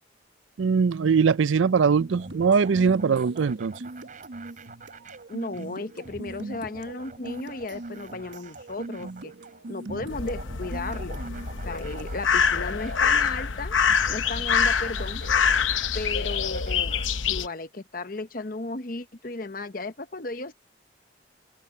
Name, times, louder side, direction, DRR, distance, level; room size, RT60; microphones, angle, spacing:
voice 1, 0.6-3.7, right 5 dB, 85° right, 0.5 m, -21 dB
sound 1, 2.0-12.3, right 2 dB, 70° right, 1.2 m, -41 dB
sound 2, 2.1-17.6, right 2 dB, 40° right, 6.2 m, -46 dB
voice 2, 5.3-9.3 9.7-11.2 11.6-13.8 14.1-15.2 15.9-17.0 17.3-20.5, left 2 dB, 45° left, 1.0 m, -35 dB
sound 3, 10.1-17.5, left 6 dB, 90° left, 0.9 m, -25 dB
open air
head